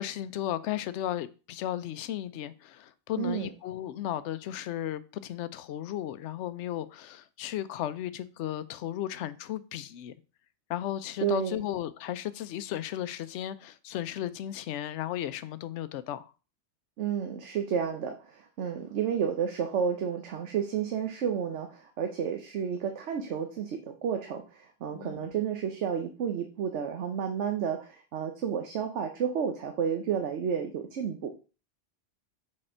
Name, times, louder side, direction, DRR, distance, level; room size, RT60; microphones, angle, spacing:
voice 1, 0.0-10.1 10.7-16.3 24.9-25.4, left 12 dB, 75° left, 0.9 m, -35 dB
voice 2, 3.2-3.5 11.2-11.6 17.0-31.3, right 7 dB, 75° right, 1.1 m, -31 dB
6.5 x 4.3 x 4.3 m
omnidirectional pair, 1.2 m